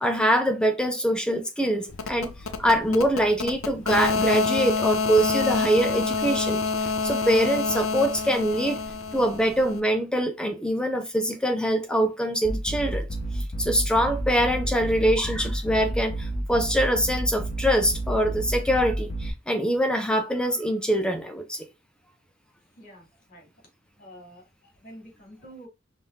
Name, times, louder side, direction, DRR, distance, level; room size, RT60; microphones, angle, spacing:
voice 1, 0.0-2.3 2.6-8.8 9.1-13.1 13.3-21.6, equal, 5° left, 0.5 m, -24 dB
sound 1, 1.9-9.8, left 4 dB, 70° left, 0.7 m, -27 dB
sound 2, 12.4-19.3, right 1 dB, 30° left, 1.6 m, -30 dB
voice 2, 22.8-23.5 24.0-25.7, right 1 dB, 45° left, 2.4 m, -48 dB
5.3 x 2.8 x 3.5 m
head